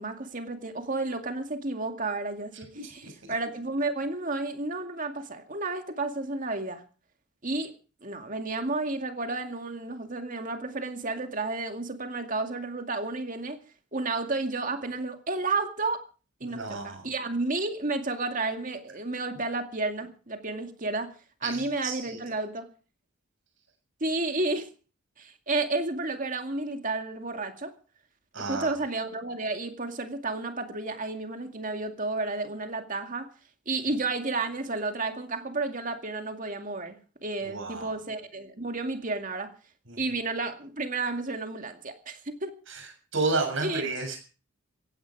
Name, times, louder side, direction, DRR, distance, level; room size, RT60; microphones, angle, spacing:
voice 1, 0.0-6.8 7.4-7.7 8.0-13.6 13.9-16.0 16.4-21.1 21.4-22.7 24.0-24.7 25.2-27.7 28.4-33.3 33.7-39.5 40.0-42.5 43.6-43.8, right 3 dB, 35° right, 2.3 m, -31 dB
voice 2, 2.7-3.1 16.4-17.0 21.4-22.2 28.3-28.7 37.4-37.9 39.9-40.0 42.7-42.9 43.1-44.2, right 3 dB, 60° right, 6.9 m, -31 dB
16.5 x 16.0 x 4.8 m
head